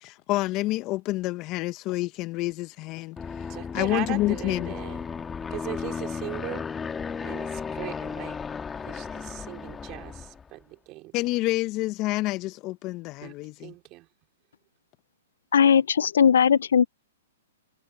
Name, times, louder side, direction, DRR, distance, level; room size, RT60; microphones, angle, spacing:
voice 1, 0.0-3.2 3.7-4.7 11.1-13.7, left 18 dB, 35° left, 1.0 m, -28 dB
Aircraft, 3.2-10.5, left 6 dB, 15° left, 1.6 m, -35 dB
voice 2, 3.5-5.1 5.5-6.6 7.2-8.4 8.7-11.2 13.2-13.4 13.6-14.1, right 19 dB, 35° right, 4.1 m, -38 dB
voice 3, 15.5-16.9, left 7 dB, 75° left, 0.5 m, -19 dB
hypercardioid pair, 135°, 0 cm